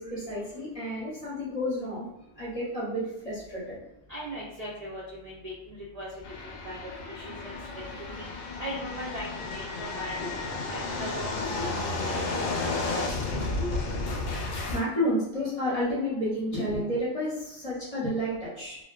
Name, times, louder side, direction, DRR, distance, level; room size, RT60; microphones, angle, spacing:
voice 1, 0.0-2.1 2.4-3.8 10.2-10.3 13.4-13.7 14.0-14.1 14.7-18.8, equal, 35° left, -8 dB, 0.7 m, -31 dB
voice 2, 4.1-6.1 6.4-6.8 7.1-7.9 8.2-8.3 8.6-10.2 10.7-11.7 12.0-12.6 12.9-13.0, equal, 70° right, -6 dB, 0.3 m, -39 dB
sound 1, 6.2-14.8, left 3 dB, 75° left, 0.9 m, -32 dB
2.5 x 2.1 x 2.3 m, 0.83 s
omnidirectional pair, 1.4 m